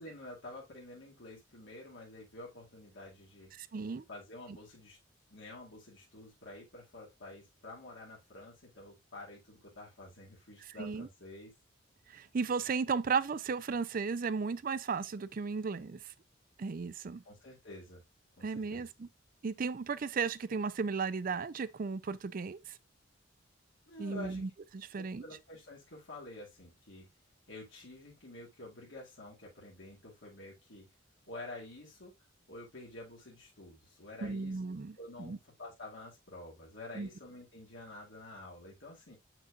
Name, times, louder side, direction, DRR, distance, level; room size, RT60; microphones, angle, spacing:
voice 1, 0.0-3.5 4.1-5.0 5.3-11.5 17.2-18.0 18.4-18.9 23.9-24.5 24.9-27.1 27.5-30.9 31.3-32.2 32.5-39.2, left 2 dB, 75° left, 2.3 m, -49 dB
voice 2, 3.6-4.0 10.8-11.1 12.1-16.0 16.6-17.2 18.4-19.1 19.4-22.8 24.0-25.2 34.2-35.4 36.9-37.1, right 5 dB, 45° right, 0.4 m, -35 dB
7.0 x 6.0 x 2.5 m
head